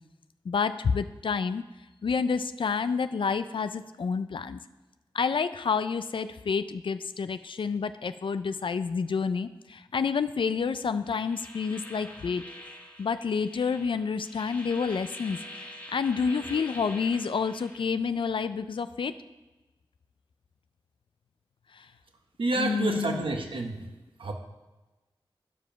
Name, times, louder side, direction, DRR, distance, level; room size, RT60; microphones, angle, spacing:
voice 1, 0.5-1.6 2.0-4.6 5.1-12.4 13.0-19.1 21.7-21.9 22.6-23.2, left 5 dB, 70° left, 12 dB, 0.4 m, -29 dB
sound 1, 11.1-17.9, left 1 dB, 20° left, 1.7 m, -45 dB
voice 2, 22.4-23.8 24.2-24.3, right 2 dB, 75° right, 3 dB, 1.2 m, -29 dB
9.6 x 5.1 x 5.7 m, 1.1 s
cardioid pair, 50°, 9 cm